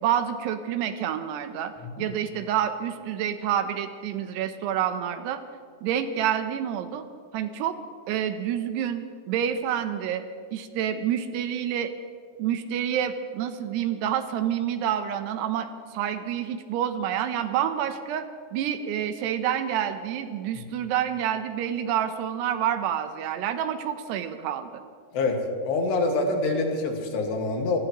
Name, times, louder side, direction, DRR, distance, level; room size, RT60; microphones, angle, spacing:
voice 1, 0.0-5.4 5.8-7.1 7.3-7.8 8.1-10.3 10.5-11.9 12.4-24.8, right 9 dB, 80° right, 9 dB, 2.8 m, -28 dB
voice 2, 25.7-27.8, left 3 dB, 80° left, 2 dB, 3.8 m, -25 dB
26.0 x 18.5 x 3.0 m, 2.1 s
omnidirectional pair, 4.9 m